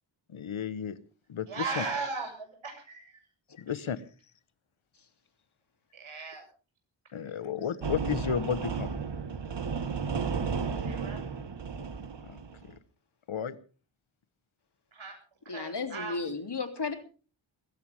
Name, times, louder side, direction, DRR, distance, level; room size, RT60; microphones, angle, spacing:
voice 1, 0.3-1.0 1.3-1.8 3.6-4.0 7.1-8.9 12.2-12.7 13.3-13.6, left 7 dB, 90° left, 14 dB, 1.3 m, -33 dB
voice 2, 1.5-3.1 5.9-6.4 10.3-10.4 10.8-11.2 14.9-15.1 15.5-16.2, right 4 dB, 85° right, 4 dB, 7.2 m, -37 dB
sound 1, 7.8-12.7, right 5 dB, 60° right, 1.8 m, -33 dB
voice 3, 15.5-16.9, left 4 dB, 55° left, 6 dB, 3.2 m, -34 dB
20.5 x 16.5 x 3.6 m, 0.38 s
wide cardioid pair, 75°, 47 cm